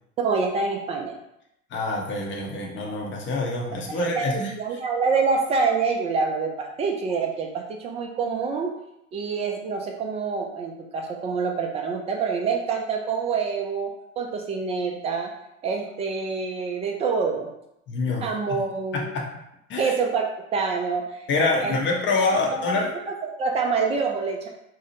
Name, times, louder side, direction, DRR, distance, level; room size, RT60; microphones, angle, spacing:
voice 1, 0.2-1.2 4.0-8.7 9.1-15.3 15.6-17.5 18.2-19.2 19.8-20.2 20.5-21.2 21.6-21.8 22.2-24.5, right 5 dB, 15° right, 2 dB, 0.3 m, -26 dB
voice 2, 1.7-4.5 17.9-18.3 18.9-19.2 19.7-19.9 21.3-22.9, left 3 dB, 30° left, 0 dB, 0.6 m, -26 dB
2.6 x 2.0 x 2.8 m, 0.81 s
figure-of-eight pair, 75°, 40 cm